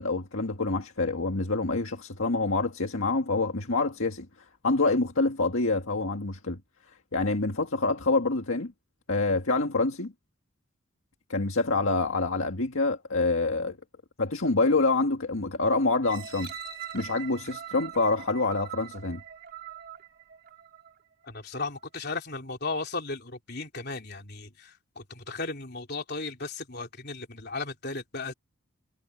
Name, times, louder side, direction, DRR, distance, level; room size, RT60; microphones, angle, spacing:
voice 1, 0.0-4.3 4.6-6.6 7.1-8.7 9.1-10.1 11.3-13.8 14.2-16.5 16.9-19.2, left 3 dB, 75° left, 1.8 m, -26 dB
sound 1, 16.0-21.0 21.5-21.6, right 9 dB, 45° right, 3.9 m, -42 dB
voice 2, 21.2-28.3, left 3 dB, 50° left, 3.6 m, -36 dB
head